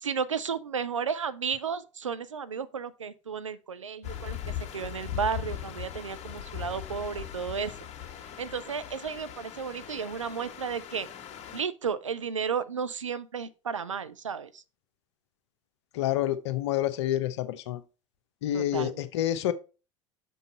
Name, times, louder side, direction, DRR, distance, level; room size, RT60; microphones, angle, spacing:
voice 1, 0.0-7.7 8.4-11.1 11.5-14.6 18.5-18.9, right 6 dB, 80° right, 0.5 m, -33 dB
sound 1, 4.0-11.6, left 10 dB, 45° left, 1.5 m, -39 dB
voice 2, 15.9-17.8 18.4-19.5, left 12 dB, 60° left, 0.8 m, -28 dB
6.1 x 5.4 x 4.1 m
figure-of-eight pair, 75°, 16 cm